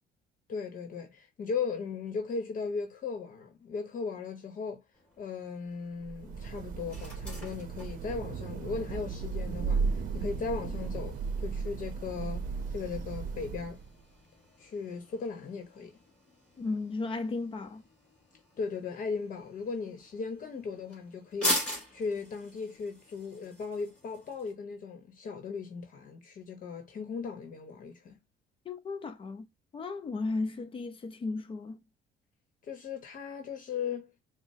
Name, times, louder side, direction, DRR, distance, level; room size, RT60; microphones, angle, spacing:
voice 1, 0.5-4.8 5.2-13.8 14.6-15.9 18.6-28.2 32.6-34.1, left 5 dB, 55° left, 0.9 m, -37 dB
sound 1, 4.9-24.5, equal, 5° left, 2.2 m, -42 dB
Thunder / Rain, 6.0-14.0, right 5 dB, 55° right, 0.7 m, -35 dB
voice 2, 16.6-17.8 28.7-29.5 29.7-31.8, left 3 dB, 30° left, 0.6 m, -35 dB
5.1 x 2.0 x 2.7 m
cardioid pair, 110°, 17 cm